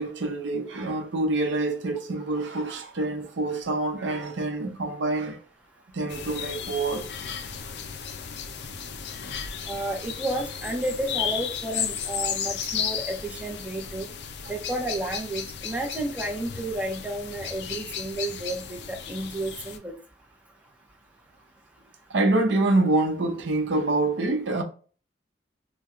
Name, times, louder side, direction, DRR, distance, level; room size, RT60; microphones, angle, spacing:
voice 1, 0.0-5.4 5.9-7.1 22.1-24.6, right 2 dB, 80° right, 0.7 m, -26 dB
sound 1, 6.1-19.8, left 7 dB, 65° left, 0.4 m, -34 dB
voice 2, 9.7-14.1 14.5-19.9, right 1 dB, 10° right, 0.6 m, -32 dB
4.2 x 2.2 x 2.4 m
head